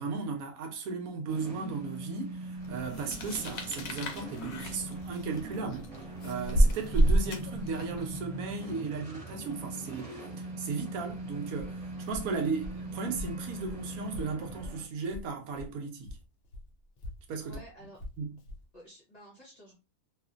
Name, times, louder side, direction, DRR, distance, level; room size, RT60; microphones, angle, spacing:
voice 1, 0.0-5.9 6.2-16.2 17.3-17.6 18.2-18.3, right 4 dB, 75° right, 1.0 m, -36 dB
sound 1, 1.3-14.8, right 2 dB, 25° right, 1.0 m, -41 dB
sound 2, 2.9-8.0, right 1 dB, 85° left, 1.2 m, -28 dB
Walk footsteps, 11.0-15.8 16.0-18.7, left 1 dB, 65° left, 0.6 m, -45 dB
voice 2, 17.4-18.0 18.7-19.7, equal, 35° left, 0.8 m, -51 dB
2.8 x 2.4 x 2.4 m
omnidirectional pair, 1.6 m